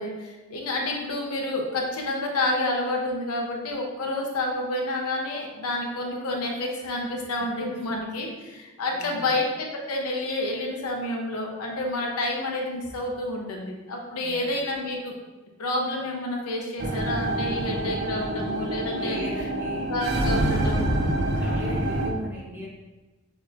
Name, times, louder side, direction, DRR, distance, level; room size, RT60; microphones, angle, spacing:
voice 1, 0.0-15.1 15.6-19.2 19.9-20.9, left 1 dB, 90° left, 0 dB, 0.8 m, -29 dB
voice 2, 7.4-7.8 8.9-9.3 14.2-14.5 19.0-19.9 21.3-22.7, equal, 10° right, -7 dB, 1.1 m, -38 dB
sound 1, 16.8-22.1, right 1 dB, 50° right, 0.5 m, -26 dB
6.2 x 2.9 x 2.5 m, 1.2 s
head